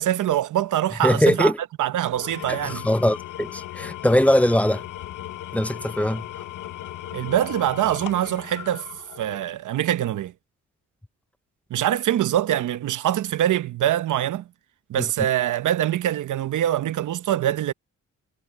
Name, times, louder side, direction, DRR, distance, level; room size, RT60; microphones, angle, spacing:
voice 1, 0.0-1.5 1.8-2.9 7.1-8.9 9.2-10.3 11.7-14.5 14.9-17.7, right 12 dB, 75° right, 1.0 m, -24 dB
voice 2, 1.0-1.6 2.6-4.8 5.5-6.3 14.9-15.0, left 1 dB, 5° left, 0.5 m, -21 dB
Engine / Tools, 2.1-9.5, left 13 dB, 75° left, 1.0 m, -37 dB
cardioid pair, 85°, 30 cm